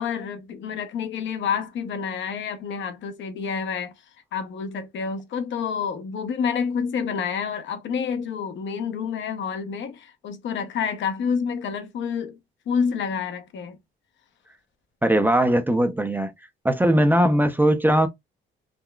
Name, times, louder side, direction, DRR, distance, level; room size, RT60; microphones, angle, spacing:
voice 1, 0.0-3.9 4.3-12.4 12.7-13.8, left 6 dB, 70° left, 0.8 m, -28 dB
voice 2, 15.0-16.3 16.6-18.1, right 1 dB, 10° right, 0.4 m, -19 dB
3.7 x 2.2 x 2.2 m
cardioid pair, 90°, 20 cm